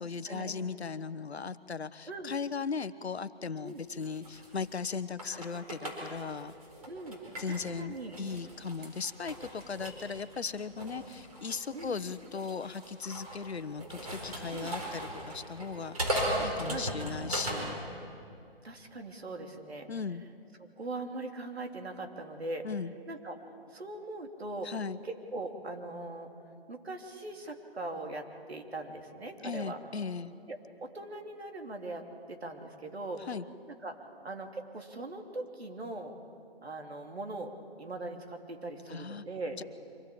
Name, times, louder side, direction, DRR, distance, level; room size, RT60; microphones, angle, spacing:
voice 1, 0.0-6.5 7.4-17.8 19.9-20.2 22.6-22.9 24.6-25.0 29.4-30.3 33.3-33.4 38.9-39.2 39.6-39.7, left 5 dB, 90° left, 14 dB, 1.0 m, -37 dB
sound 1, 3.7-7.7 8.1-17.7, right 1 dB, 35° right, 4.4 m, -38 dB
voice 2, 6.9-7.2 7.5-8.2 11.7-11.9 14.5-14.8 16.7-16.9 18.6-19.9 20.8-22.7 23.1-23.4 23.7-24.7 25.0-26.3 26.7-29.8 30.5-33.2 33.8-34.0 34.2-36.1 36.6-37.5 37.8-39.6, right 2 dB, 75° right, 3 dB, 3.1 m, -40 dB
25.0 x 16.5 x 8.7 m, 2.5 s
hypercardioid pair, 180°, 31 cm